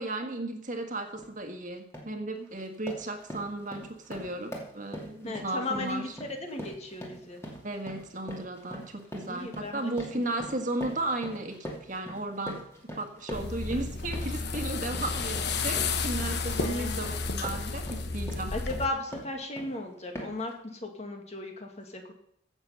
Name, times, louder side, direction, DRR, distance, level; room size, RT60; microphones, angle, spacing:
voice 1, 0.0-6.1 7.6-12.6 13.0-18.5, right 2 dB, 40° right, 5 dB, 1.7 m, -35 dB
sound 1, 1.1-1.3 1.7-2.2 2.5-19.8 20.1-20.5, equal, 15° left, 2.5 m, -43 dB
voice 2, 5.2-6.1 6.4-7.4 9.3-10.2 16.6-17.4 18.5-22.1, left 2 dB, 35° left, 3 dB, 2.0 m, -36 dB
sound 2, 13.3-18.9, left 4 dB, 60° left, 1.1 m, -32 dB
16.0 x 7.2 x 5.7 m, 0.72 s
head